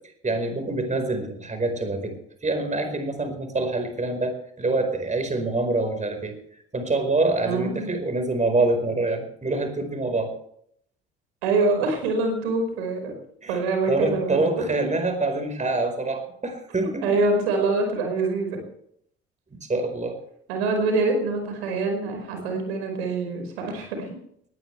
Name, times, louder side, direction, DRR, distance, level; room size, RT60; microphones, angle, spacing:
voice 1, 0.2-6.3 6.7-10.3 13.4-13.6 13.9-17.1 19.5-20.2, right 2 dB, 20° right, 6 dB, 4.8 m, -26 dB
voice 2, 7.4-8.0 11.4-13.1 13.5-14.9 16.8-18.6 20.5-24.1, right 3 dB, 75° right, 4 dB, 5.3 m, -25 dB
19.5 x 18.0 x 3.4 m, 0.68 s
hypercardioid pair, 55°, 32 cm